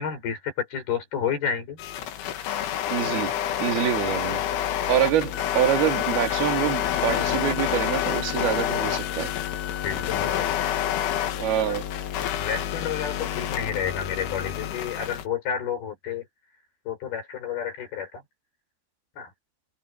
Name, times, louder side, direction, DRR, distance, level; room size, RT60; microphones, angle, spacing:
voice 1, 0.0-1.8 9.8-10.8 11.6-11.8 12.2-16.3 16.9-18.2 19.2-19.3, left 8 dB, 55° left, 6.8 m, -30 dB
sound 1, 1.8-15.3, left 10 dB, 85° left, 4.3 m, -28 dB
voice 2, 2.9-3.3 3.6-4.4 4.9-9.3 11.4-11.9, right 11 dB, 60° right, 4.0 m, -25 dB
omnidirectional pair, 5.3 m